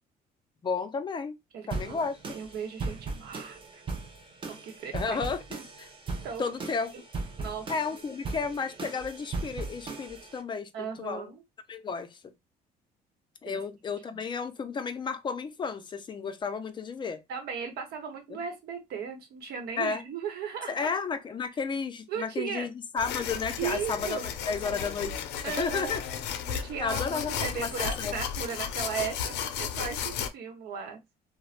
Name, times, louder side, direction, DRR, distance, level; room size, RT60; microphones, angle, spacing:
voice 1, 0.6-1.4 1.7-2.2 4.9-5.4 5.8-5.9 6.4-6.9 7.7-11.3 11.7-12.2 13.4-17.2 19.8-20.0 20.7-24.2 24.5-26.0 26.8-28.2, left 5 dB, 30° left, 0.4 m, -32 dB
voice 2, 1.5-3.8 4.4-5.6 6.2-6.5 6.9-7.0 7.4-7.7 10.7-11.4 13.5-13.6 14.1-14.2 17.3-20.9 22.1-22.7 23.6-24.3 25.4-26.0 26.5-31.0, right 7 dB, 70° right, 0.9 m, -37 dB
sound 1, 1.7-10.4, right 3 dB, 30° right, 0.6 m, -38 dB
sound 2, 23.0-30.3, left 8 dB, 85° left, 0.5 m, -34 dB
3.0 x 2.0 x 2.4 m
cardioid pair, 110°, 17 cm